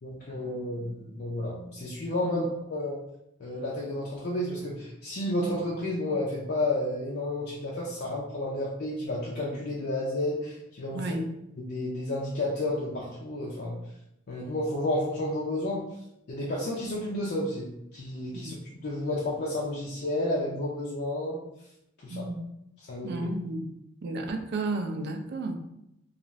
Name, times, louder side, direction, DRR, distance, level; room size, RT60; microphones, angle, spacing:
voice 1, 0.0-3.0 3.4-11.0 11.6-13.8 14.3-15.8 16.3-18.6 18.8-21.4 22.0-22.3 22.9-23.1, left 1 dB, 55° left, -5 dB, 0.5 m, -31 dB
voice 2, 10.9-11.3 18.3-18.6 22.1-22.4 23.0-23.6 24.0-25.5, right 2 dB, 55° right, 5 dB, 0.4 m, -32 dB
2.4 x 2.4 x 3.0 m, 0.82 s
head